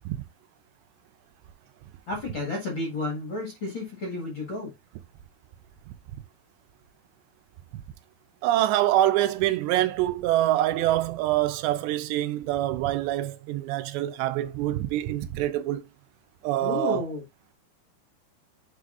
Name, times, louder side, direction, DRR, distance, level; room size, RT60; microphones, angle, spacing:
voice 1, 2.1-4.7 16.6-17.2, left 2 dB, 50° left, 1.5 m, -31 dB
voice 2, 8.4-15.8 16.4-17.0, right 14 dB, 85° right, 2.9 m, -25 dB
9.7 x 4.9 x 2.5 m
omnidirectional pair, 5.0 m